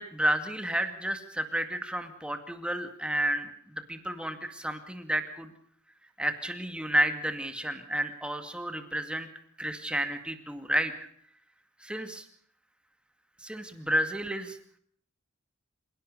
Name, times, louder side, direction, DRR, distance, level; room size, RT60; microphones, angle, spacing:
voice 1, 0.0-5.5 6.2-9.3 9.6-10.9 11.8-12.2 13.4-14.6, right 1 dB, 5° right, 8 dB, 2.2 m, -31 dB
27.0 x 17.5 x 6.9 m, 0.63 s
head